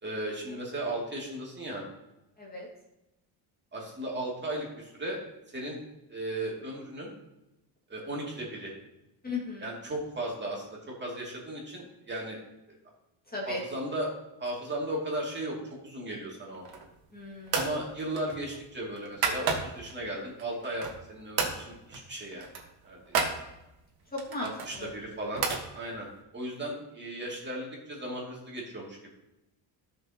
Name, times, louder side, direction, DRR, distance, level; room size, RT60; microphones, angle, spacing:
voice 1, 0.0-1.8 3.7-5.2 5.5-5.8 6.1-7.1 7.9-8.7 9.6-12.4 13.4-14.1 14.4-16.6 17.5-22.5 22.8-23.1 24.4-25.4 25.7-26.1 26.3-29.1, right 1 dB, 20° right, -3 dB, 2.6 m, -36 dB
voice 2, 9.2-9.7 13.3-13.6 17.1-17.6 24.1-24.5 24.8-24.9, left 3 dB, 20° left, -4 dB, 2.1 m, -36 dB
sound 1, 16.5-17.0 17.5-17.8 18.1-19.9 20.4-21.1 21.4-21.6 21.9-22.1 22.3-23.4 24.2-25.6, right 5 dB, 45° right, 1.7 m, -32 dB
12.5 x 6.6 x 2.9 m, 0.92 s
cardioid pair, 120°, 49 cm